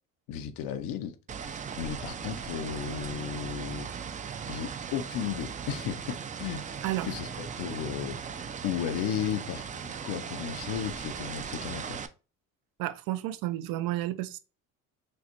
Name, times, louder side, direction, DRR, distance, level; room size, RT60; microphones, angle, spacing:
voice 1, 0.3-1.2 1.8-3.9 4.5-6.8 7.0-12.0, left 9 dB, 85° left, 0.7 m, -34 dB
sound 1, 1.3-12.1, right 7 dB, 25° right, 0.3 m, -38 dB
voice 2, 12.8-14.4, right 15 dB, 75° right, 0.6 m, -31 dB
6.2 x 2.1 x 2.9 m
cardioid pair, 130°, 34 cm